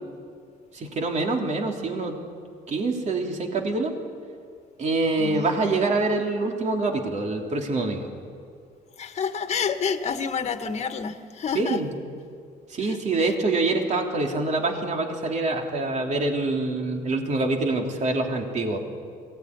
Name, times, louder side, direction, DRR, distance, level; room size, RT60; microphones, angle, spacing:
voice 1, 0.7-2.2 2.7-3.9 4.8-8.1 11.5-11.9 12.7-18.8, right 3 dB, 45° right, 2 dB, 3.2 m, -25 dB
voice 2, 5.2-5.5 9.0-11.8 12.8-13.3, left 6 dB, 40° left, 8 dB, 1.7 m, -29 dB
22.0 x 17.5 x 9.7 m, 2.2 s
cardioid pair, 110°, 17 cm